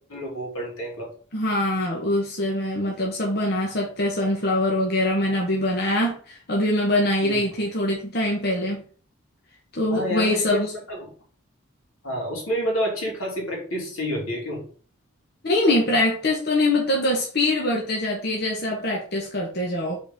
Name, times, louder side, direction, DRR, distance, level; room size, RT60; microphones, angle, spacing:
voice 1, 0.1-1.1 7.2-7.4 9.9-10.6 10.9-11.1 12.0-14.6, equal, 85° left, -1 dB, 2.8 m, -28 dB
voice 2, 1.3-8.8 9.7-10.7 15.4-20.0, left 1 dB, 50° left, -1 dB, 1.3 m, -23 dB
5.1 x 4.2 x 5.2 m, 0.43 s
head